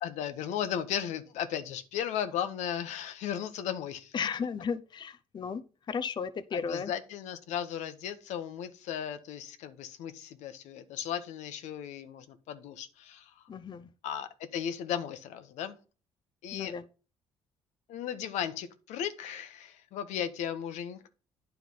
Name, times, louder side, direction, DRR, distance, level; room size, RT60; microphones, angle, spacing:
voice 1, 0.0-4.1 6.5-13.4 14.0-15.7 16.4-16.7 17.9-21.1, left 9 dB, 80° left, 10 dB, 1.0 m, -36 dB
voice 2, 4.1-5.6 5.9-6.9 13.5-13.9 16.5-16.8, left 6 dB, 40° left, 12 dB, 0.6 m, -34 dB
9.5 x 4.6 x 5.5 m, 0.34 s
cardioid pair, 85°, 12 cm